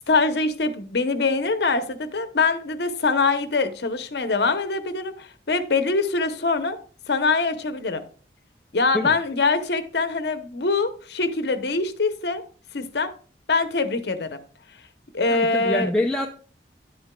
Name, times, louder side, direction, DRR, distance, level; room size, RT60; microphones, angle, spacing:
voice 1, 0.1-6.8 7.1-8.0 8.7-12.4 12.7-13.1 13.5-14.4 15.1-15.9, left 3 dB, 75° left, 0.8 m, -23 dB
voice 2, 15.3-16.3, left 1 dB, 5° left, 0.4 m, -25 dB
10.0 x 7.9 x 2.2 m
head